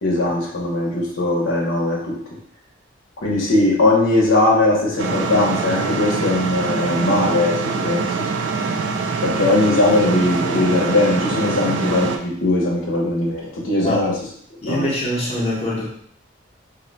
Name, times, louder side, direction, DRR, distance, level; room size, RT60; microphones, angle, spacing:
voice 1, 0.0-2.2 3.2-8.3 9.2-14.1 14.7-14.9, left 2 dB, 85° left, -4 dB, 0.9 m, -19 dB
sound 1, 5.0-12.2, right 4 dB, 65° right, 0.3 m, -24 dB
voice 2, 9.5-10.0 13.8-14.1 14.6-15.9, left 1 dB, 30° left, -6 dB, 0.8 m, -24 dB
2.7 x 2.1 x 3.9 m, 0.64 s
head